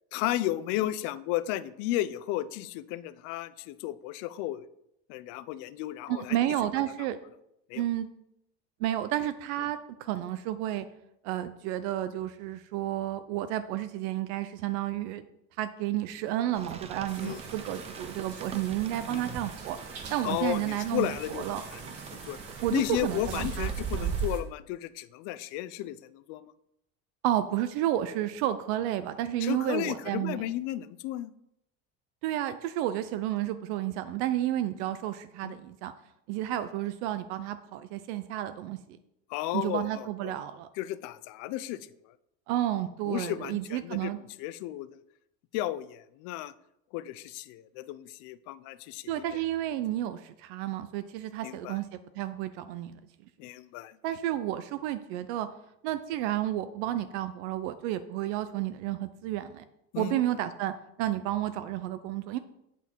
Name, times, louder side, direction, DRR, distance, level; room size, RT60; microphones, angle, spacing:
voice 1, 0.1-4.7 5.1-6.4 7.7-7.8 17.2-17.4 19.1-19.2 20.2-21.5 21.7-21.9 22.2-22.4 22.7-26.5 29.4-31.3 35.4-35.5 39.3-40.4 40.8-42.1 43.1-44.9 45.5-46.5 46.9-49.2 51.4-51.8 53.4-54.0 59.9-60.2, left 14 dB, 60° left, 15 dB, 0.5 m, -34 dB
voice 2, 6.1-7.2 7.8-8.1 8.8-10.9 11.2-15.2 15.6-19.8 20.1-21.6 22.6-23.7 24.0-24.1 27.2-30.4 32.2-35.9 36.3-38.8 39.5-40.7 42.5-44.2 49.1-51.9 52.1-53.0 54.0-55.5 55.8-59.6 60.0-60.7 61.0-62.4, right 13 dB, 80° right, 11 dB, 0.6 m, -31 dB
Rain, 16.6-24.3, right 7 dB, 20° right, 0.5 m, -39 dB
sound 1, 17.1-24.4, right 4 dB, 45° right, 1.6 m, -46 dB
8.4 x 5.8 x 4.5 m, 0.80 s
cardioid pair, 155°, 33 cm